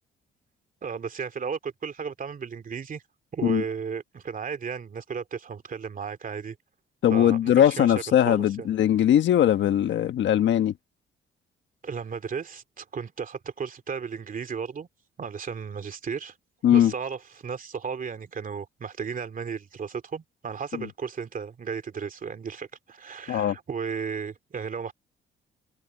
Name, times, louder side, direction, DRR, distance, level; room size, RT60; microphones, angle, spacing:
voice 1, 0.8-3.0 3.3-6.6 7.1-8.7 11.8-14.9 15.2-16.4 16.7-24.9, right 6 dB, 45° right, 2.7 m, -34 dB
voice 2, 7.0-10.7 16.6-16.9 20.7-20.9 23.3-23.6, left 10 dB, 70° left, 1.3 m, -20 dB
cardioid pair, 90°, 20 cm